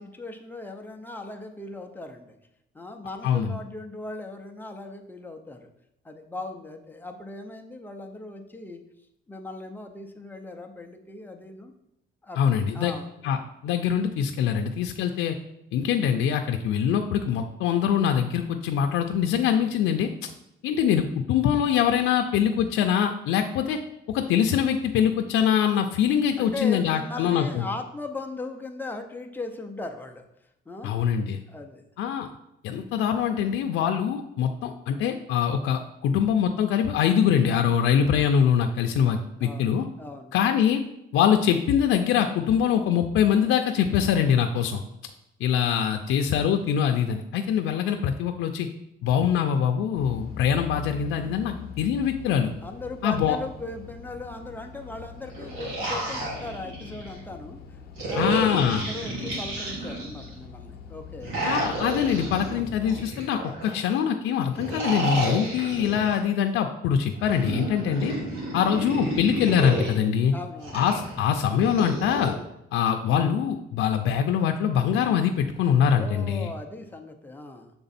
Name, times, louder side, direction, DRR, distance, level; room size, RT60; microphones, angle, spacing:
voice 1, 0.0-2.4 2.7-5.7 6.0-8.8 9.3-11.7 12.2-13.1 26.4-30.3 30.7-30.9 31.5-31.8 39.4-40.3 52.6-61.3 70.3-70.8 75.9-77.7, left 2 dB, 10° left, 4 dB, 0.5 m, -38 dB
voice 2, 3.2-3.6 12.4-12.9 13.2-13.4 13.6-15.4 15.7-20.3 20.6-23.8 24.1-27.7 30.8-31.4 32.0-32.3 32.6-39.8 40.3-40.8 41.1-44.8 45.4-48.7 49.0-52.5 53.0-53.4 58.2-58.8 61.4-68.2 68.5-70.3 70.7-72.3 72.7-76.5, left 8 dB, 90° left, 4 dB, 0.5 m, -23 dB
sound 1, 49.9-63.0, left 6 dB, 50° left, 0.7 m, -43 dB
sound 2, 55.2-57.1 58.0-60.3 61.2-63.7 64.5-66.2 67.1-69.9 70.6-72.3, right 1 dB, 90° right, 2.3 m, -31 dB
6.8 x 3.6 x 4.1 m, 0.82 s
cardioid pair, 170°, 20 cm